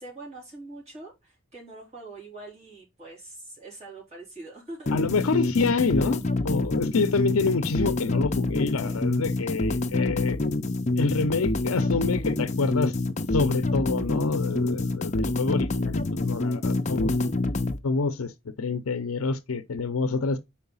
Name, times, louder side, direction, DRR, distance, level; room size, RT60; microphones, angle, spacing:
voice 1, 0.0-4.9 8.8-9.0, right 2 dB, 30° right, 3.7 m, -43 dB
voice 2, 4.9-10.4 11.0-12.9 13.3-17.1 17.8-18.3 18.6-20.4, left 4 dB, 85° left, 0.6 m, -27 dB
sound 1, 4.9-17.8, left 2 dB, 35° left, 0.5 m, -27 dB
4.7 x 4.4 x 5.5 m
head